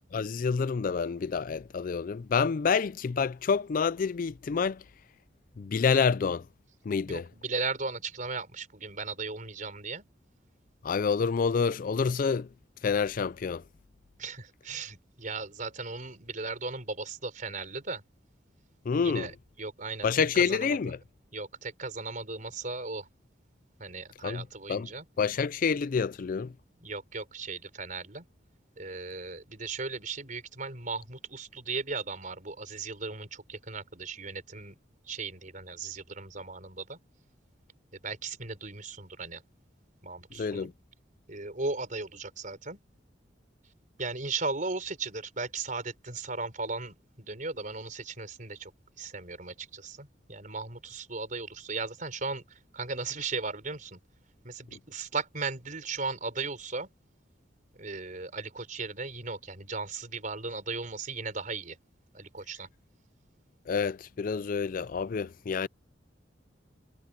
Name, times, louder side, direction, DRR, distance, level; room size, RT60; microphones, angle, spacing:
voice 1, 0.1-4.8 5.6-6.5 6.8-7.3 10.8-12.5 12.8-13.6 18.9-19.3 20.0-21.0 24.2-24.4 24.7-24.9 25.2-26.5 40.3-40.7 54.7-54.8 63.7-65.7, left 5 dB, 45° left, 0.4 m, -28 dB
voice 2, 7.1-10.0 14.2-18.0 19.0-19.3 19.6-20.8 21.3-23.1 23.8-25.0 26.8-28.3 28.8-34.8 35.1-37.0 37.9-39.4 40.0-40.7 41.3-42.8 44.0-48.7 49.0-54.0 54.4-56.9 57.8-61.8 62.1-62.7, right 4 dB, 45° right, 4.5 m, -37 dB
head